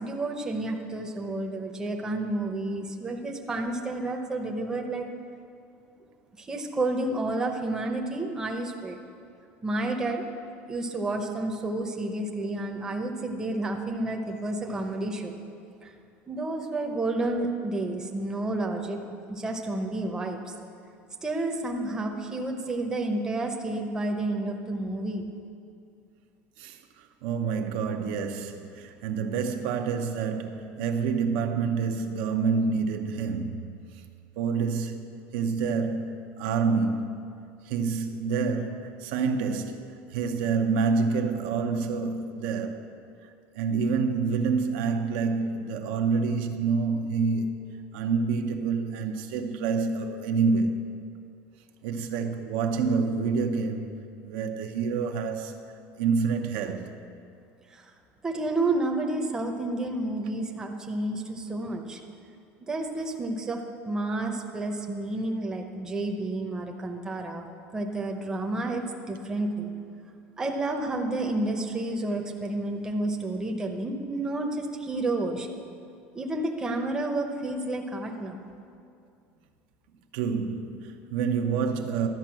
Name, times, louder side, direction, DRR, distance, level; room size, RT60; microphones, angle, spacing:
voice 1, 0.0-5.1 6.4-9.0 9.6-10.2 10.7-15.4 15.8-15.9 16.3-19.0 19.3-20.4 21.2-25.3 57.7-57.8 58.2-62.0 62.7-63.6 63.9-67.5 67.7-69.7 70.4-75.6 76.1-78.4, right 2 dB, 10° right, 0.7 m, -30 dB
voice 2, 27.2-33.7 34.4-37.2 37.7-39.8 40.1-42.8 43.5-50.9 51.8-53.9 54.2-55.5 56.0-57.0 80.1-82.1, right 5 dB, 75° right, 0.8 m, -27 dB
12.0 x 5.3 x 7.5 m
cardioid pair, 155°, 5 cm